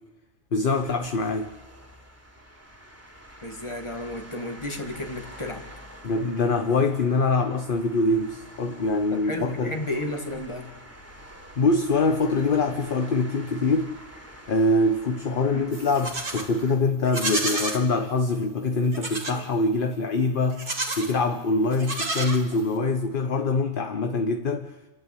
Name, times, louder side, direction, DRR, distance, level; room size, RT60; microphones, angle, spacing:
voice 1, 0.5-1.5 6.0-9.8 11.6-13.9 14.5-20.6 21.0-24.7, left 3 dB, 45° left, 1.0 m, -24 dB
sound 1, 0.7-16.8, equal, 10° right, 3.2 m, -47 dB
voice 2, 3.4-5.7 9.1-10.8 15.5-15.8, left 1 dB, 20° left, 2.1 m, -33 dB
Livestock farm animals working animals, 15.7-16.5 17.0-17.8 18.9-19.4 20.5-21.2 21.7-22.8, right 2 dB, 40° right, 2.3 m, -30 dB
28.5 x 12.0 x 8.4 m
omnidirectional pair, 1.4 m